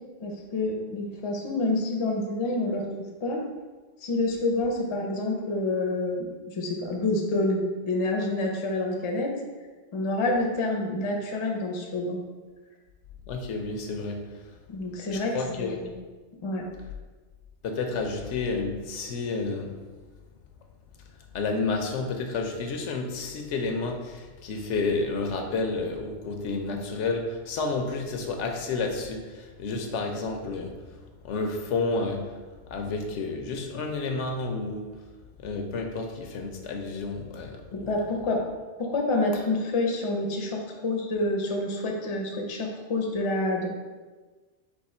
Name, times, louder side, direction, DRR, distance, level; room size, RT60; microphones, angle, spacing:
voice 1, 0.2-2.8 3.2-3.4 4.0-9.3 9.9-12.2 14.7-16.0 16.4-16.6 37.7-38.4 38.8-43.7, left 2 dB, 40° left, 1 dB, 0.5 m, -28 dB
voice 2, 13.3-14.4 15.1-15.8 17.6-19.8 21.3-30.8 31.2-32.3 32.7-34.9 35.4-38.0, left 3 dB, 85° left, 3 dB, 0.9 m, -30 dB
3.6 x 3.0 x 4.2 m, 1.3 s
omnidirectional pair, 1.2 m